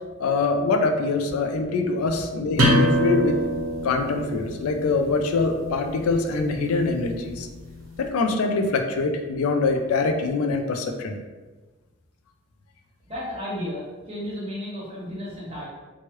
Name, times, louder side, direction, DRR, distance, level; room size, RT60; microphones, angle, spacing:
voice 1, 0.2-3.4 3.8-7.5 8.0-11.2, left 3 dB, 90° left, 4 dB, 0.4 m, -24 dB
sound 1, 2.6-8.0, equal, 80° right, 0.8 m, -26 dB
voice 2, 13.0-15.7, left 1 dB, 25° right, -7 dB, 0.9 m, -33 dB
3.0 x 2.3 x 3.0 m, 1.2 s
head